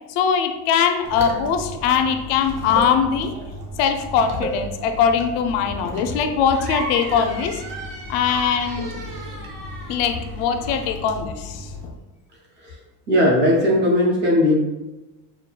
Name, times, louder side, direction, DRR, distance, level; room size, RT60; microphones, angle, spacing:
voice 1, 0.1-3.3 3.8-7.6 8.1-8.9 9.9-11.9, left 7 dB, 85° left, 7 dB, 0.6 m, -21 dB
sound 1, 1.0-11.9, equal, 70° right, 0.8 m, -34 dB
sound 2, 6.5-10.9, right 2 dB, 50° right, 1.0 m, -36 dB
voice 2, 13.1-14.6, left 1 dB, 25° right, -2 dB, 0.4 m, -17 dB
5.7 x 2.3 x 2.2 m, 1.1 s
cardioid pair, 175°, 45 cm